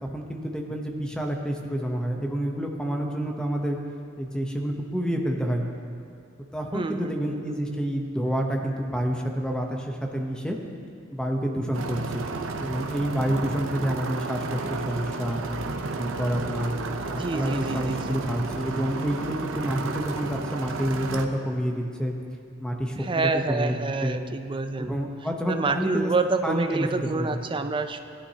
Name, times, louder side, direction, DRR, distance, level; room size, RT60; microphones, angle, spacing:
voice 1, 0.0-3.8 4.2-5.6 6.5-10.6 11.1-12.3 12.6-15.4 16.0-16.8 17.1-22.1 22.6-24.2 24.8-26.1 26.4-27.4, equal, 5° left, 1 dB, 0.8 m, -28 dB
voice 2, 6.7-7.8 17.1-18.2 23.0-24.9 25.5-28.0, right 3 dB, 25° right, 8 dB, 0.5 m, -28 dB
sound 1, 11.7-21.2, right 3 dB, 85° right, 0.7 m, -32 dB
17.5 x 11.0 x 2.8 m, 2.4 s
head